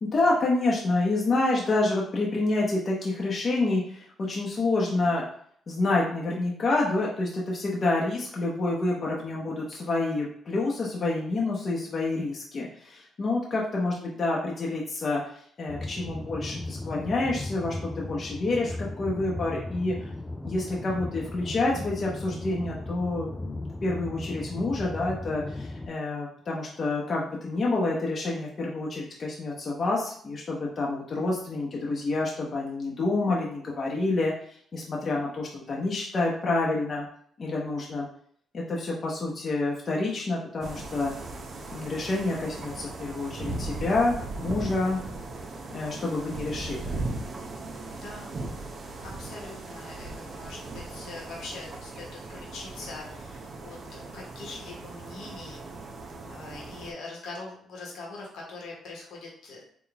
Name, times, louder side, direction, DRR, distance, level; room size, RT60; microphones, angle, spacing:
voice 1, 0.0-5.2 5.7-15.2 15.6-20.0 20.4-34.3 34.7-37.1 37.4-38.1 38.5-41.1 41.7-45.0 45.7-47.0, left 2 dB, 45° left, -4 dB, 0.8 m, -28 dB
sound 1, 15.7-25.9, left 2 dB, 15° left, 0.3 m, -36 dB
sound 2, 40.6-56.9, right 2 dB, 50° right, 0.6 m, -38 dB
voice 2, 47.9-48.3 49.0-55.7 56.3-59.6, left 3 dB, 75° left, -2 dB, 1.1 m, -42 dB
3.9 x 2.3 x 3.4 m, 0.62 s
cardioid pair, 90°, 0 cm